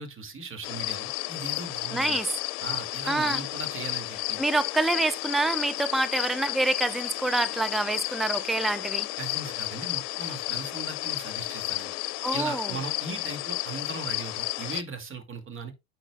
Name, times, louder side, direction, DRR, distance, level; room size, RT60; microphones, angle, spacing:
voice 1, 0.0-2.2 2.6-4.4 9.2-11.9 12.3-15.7, right 4 dB, 30° right, 2.2 m, -38 dB
sound 1, 0.6-14.8, left 18 dB, 65° left, 0.8 m, -32 dB
voice 2, 1.9-2.3 3.1-3.4 4.4-9.1 12.2-12.8, right 2 dB, ahead, 0.6 m, -27 dB
9.0 x 6.7 x 2.2 m
hypercardioid pair, 85°, 41 cm